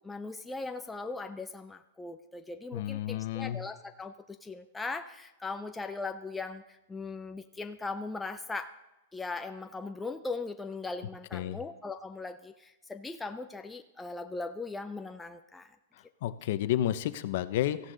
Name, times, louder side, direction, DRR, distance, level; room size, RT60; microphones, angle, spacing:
voice 1, 0.0-8.7 9.1-15.8, left 3 dB, 5° left, 6 dB, 0.4 m, -39 dB
voice 2, 2.7-3.6 11.3-11.6 16.2-17.9, left 12 dB, 50° left, 13 dB, 0.8 m, -31 dB
17.5 x 14.5 x 4.0 m, 1.0 s
supercardioid pair, 170°, 0 cm